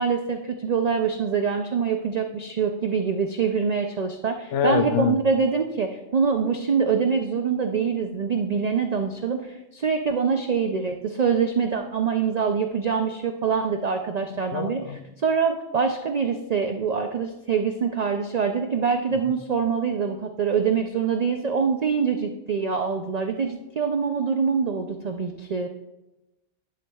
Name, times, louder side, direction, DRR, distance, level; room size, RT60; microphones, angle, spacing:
voice 1, 0.0-25.7, right 6 dB, 65° right, 5 dB, 0.4 m, -25 dB
voice 2, 4.5-5.2 14.3-15.0, left 8 dB, 75° left, 10 dB, 0.9 m, -25 dB
11.0 x 7.1 x 2.3 m, 0.99 s
omnidirectional pair, 1.3 m